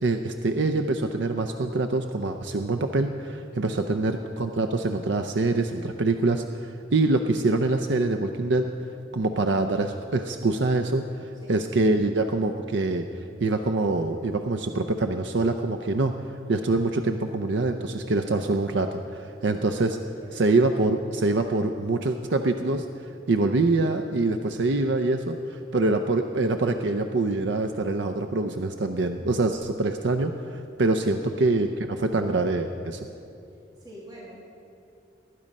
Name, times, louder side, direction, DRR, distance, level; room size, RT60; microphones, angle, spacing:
voice 1, 0.0-13.1 13.4-16.1 16.5-20.0 20.4-22.9 23.3-33.1, right 2 dB, 85° right, 7 dB, 0.6 m, -25 dB
voice 2, 3.6-4.1 11.4-11.6 20.2-20.6 31.2-31.6 33.8-34.4, equal, 25° right, -5 dB, 2.1 m, -46 dB
19.5 x 10.0 x 5.3 m, 2.6 s
head